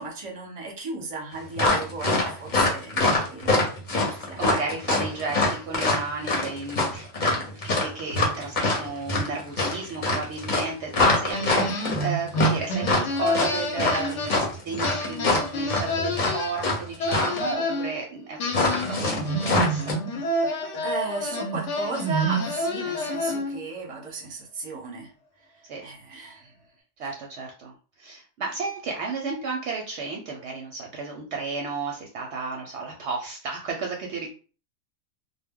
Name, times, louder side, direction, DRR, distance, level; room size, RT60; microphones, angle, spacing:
voice 1, 0.0-3.6 4.0-4.5 20.4-25.1 25.8-26.5, right 4 dB, 30° right, 0 dB, 0.7 m, -35 dB
sound 1, 1.6-16.8 17.1-17.4 18.5-19.9, left 2 dB, 40° left, 0.8 m, -24 dB
voice 2, 4.1-20.0 25.6-25.9 27.0-34.3, right 4 dB, 65° right, 0 dB, 0.8 m, -33 dB
sound 2, 11.3-14.6 14.8-17.9 18.4-23.7, equal, 70° left, 0.9 m, -28 dB
2.2 x 2.1 x 3.5 m, 0.38 s
omnidirectional pair, 1.4 m